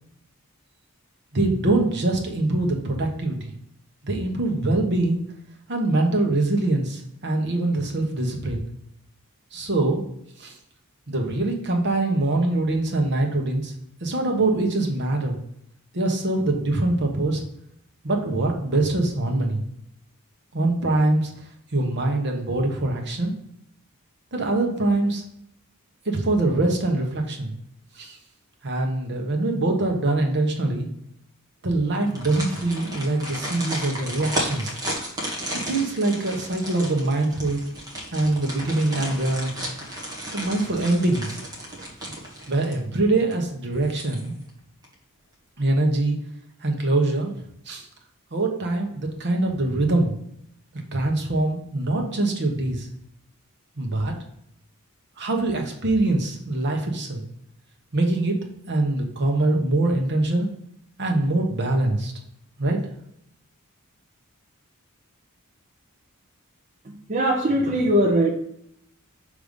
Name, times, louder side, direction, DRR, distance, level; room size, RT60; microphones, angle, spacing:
voice 1, 1.3-3.5 4.0-5.2 5.7-8.7 9.5-10.0 10.4-10.5 11.1-13.7 14.0-15.4 15.9-17.4 18.0-19.6 20.5-21.3 21.7-23.3 24.3-25.2 26.0-27.5 27.9-28.2 28.6-30.9 31.6-34.7 35.5-37.6 38.1-39.5 40.3-41.4 42.5-44.3 45.6-46.2 46.6-47.3 47.7-47.8 48.3-50.1 50.9-52.9 53.8-54.1 55.2-57.2 57.9-60.5 61.0-62.1 62.6-62.8, right 2 dB, 55° right, 3 dB, 1.1 m, -23 dB
sound 1, 32.0-43.0 43.3-43.4 43.8-44.5 44.8-44.9, equal, 15° right, 1.4 m, -34 dB
voice 2, 66.8-68.3, right 1 dB, 35° right, -2 dB, 0.7 m, -21 dB
6.4 x 3.4 x 5.2 m, 0.73 s
head